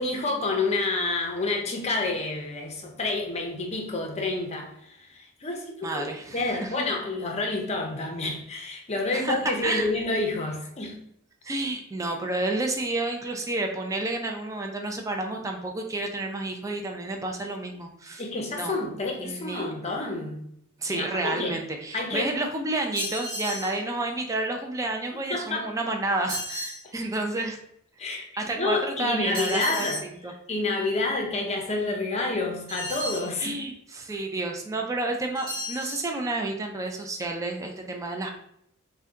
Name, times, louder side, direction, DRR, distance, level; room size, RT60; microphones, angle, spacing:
voice 1, 0.0-6.1 6.3-11.0 18.2-20.5 20.9-21.6 21.9-22.3 25.3-25.7 28.0-28.2 28.5-30.0 30.5-33.6, left 2 dB, 30° left, 1 dB, 0.6 m, -29 dB
voice 2, 5.8-6.7 9.1-9.3 9.6-9.9 11.4-18.2 18.5-18.8 19.2-19.7 20.8-27.6 28.4-30.3 33.4-38.3, right 2 dB, 15° right, 2 dB, 0.4 m, -30 dB
sound 1, 22.9-23.8 26.3-26.8 29.3-30.0 32.7-33.3 35.3-36.1, equal, 45° right, 1.1 m, -34 dB
2.7 x 2.2 x 3.5 m, 0.72 s
head